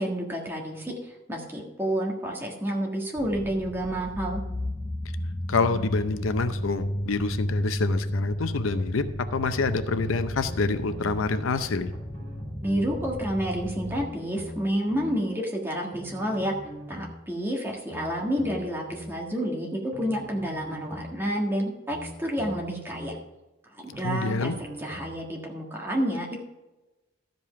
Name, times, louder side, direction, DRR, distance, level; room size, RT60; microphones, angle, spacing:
voice 1, 0.0-4.4 12.6-16.5 16.9-23.1 23.8-24.5 24.8-26.4, equal, 10° right, -1 dB, 1.5 m, -29 dB
sound 1, 3.2-14.1, equal, 20° left, 0.5 m, -33 dB
voice 2, 5.5-11.9 24.0-24.6, left 3 dB, 75° left, 11 dB, 0.6 m, -26 dB
sound 2, 9.9-11.1 11.9-13.2 13.9-15.1 15.9-17.2 17.9-19.1 19.9-21.2 21.9-23.1 23.9-25.2 25.9-26.0, equal, 40° right, 3.2 m, -42 dB
13.0 x 5.3 x 5.8 m, 1.1 s
head